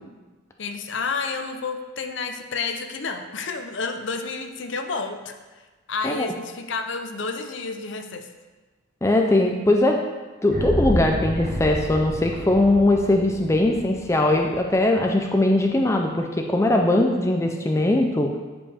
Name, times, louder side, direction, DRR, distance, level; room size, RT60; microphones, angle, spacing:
voice 1, 0.6-5.3 5.9-8.3, left 4 dB, 65° left, 6 dB, 0.6 m, -30 dB
voice 2, 9.0-10.0 10.4-18.3, left 1 dB, 15° left, 2 dB, 0.4 m, -20 dB
sound 1, 10.5-14.5, equal, 45° right, 1.4 m, -29 dB
9.8 x 5.2 x 3.5 m, 1.3 s
head